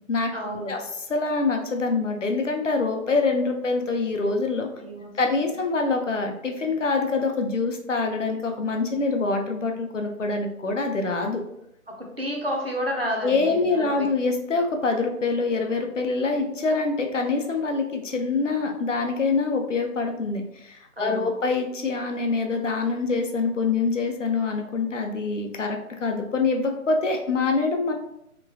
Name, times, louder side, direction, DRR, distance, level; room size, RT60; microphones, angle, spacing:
voice 1, 0.3-0.8 4.8-5.1 12.0-14.1 21.0-21.3, equal, 45° right, 0 dB, 0.5 m, -30 dB
voice 2, 1.1-4.7 5.1-11.4 13.2-27.9, left 3 dB, 60° left, 3 dB, 0.5 m, -25 dB
2.9 x 2.3 x 2.5 m, 0.77 s
figure-of-eight pair, 160°, 43 cm